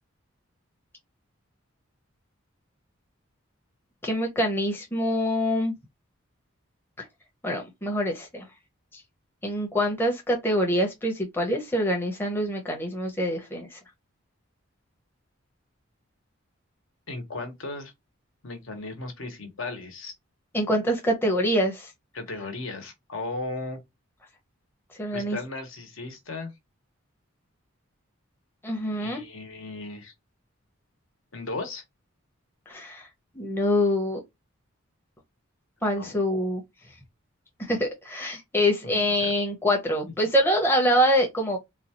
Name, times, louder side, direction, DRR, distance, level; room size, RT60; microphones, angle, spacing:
voice 1, 4.0-5.7 7.4-8.5 8.9-9.0 9.4-13.8 20.5-21.9 25.0-25.4 28.6-29.2 32.7-33.1 33.3-34.2 35.8-36.6 37.6-41.6, equal, 10° left, 0.7 m, -25 dB
voice 2, 17.1-17.9 18.4-20.1 22.1-23.8 25.1-26.5 29.0-30.1 31.3-31.8 36.0-36.2 38.8-39.3, left 3 dB, 65° left, 1.1 m, -36 dB
4.1 x 2.3 x 2.8 m
head